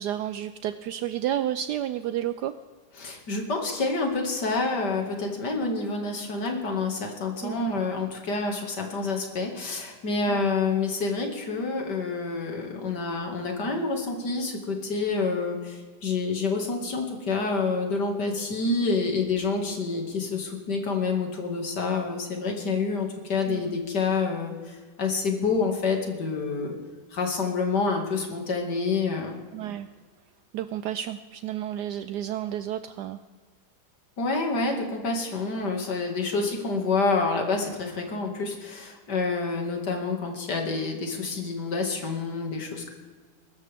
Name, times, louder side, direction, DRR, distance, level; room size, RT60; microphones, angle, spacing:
voice 1, 0.0-2.5 7.4-7.8 10.3-10.4 23.5-23.8 29.5-29.9 30.5-33.2, right 11 dB, 75° right, 11 dB, 1.1 m, -31 dB
voice 2, 3.0-26.7 27.1-29.4 34.2-42.9, left 4 dB, 65° left, 2 dB, 2.8 m, -28 dB
23.0 x 12.5 x 3.6 m, 1.4 s
omnidirectional pair, 1.9 m